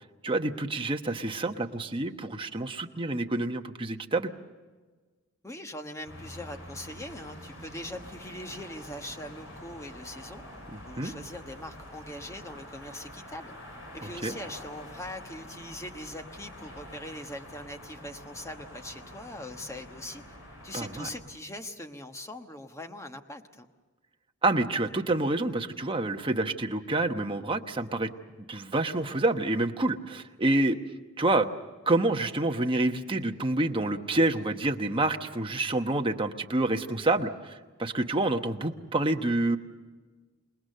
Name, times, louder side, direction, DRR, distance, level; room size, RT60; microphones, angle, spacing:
voice 1, 0.2-4.3 10.7-11.1 14.2-14.3 20.7-21.1 24.4-28.1 28.5-30.8 31.2-31.5 31.9-39.6, right 2 dB, 25° right, 5 dB, 1.1 m, -28 dB
voice 2, 5.4-10.4 10.8-13.5 13.9-20.2 20.6-23.7, left 1 dB, 15° left, 6 dB, 1.2 m, -41 dB
sound 1, 6.0-21.2, left 1 dB, 70° left, 7.3 m, -46 dB
28.0 x 20.0 x 6.7 m, 1.3 s
head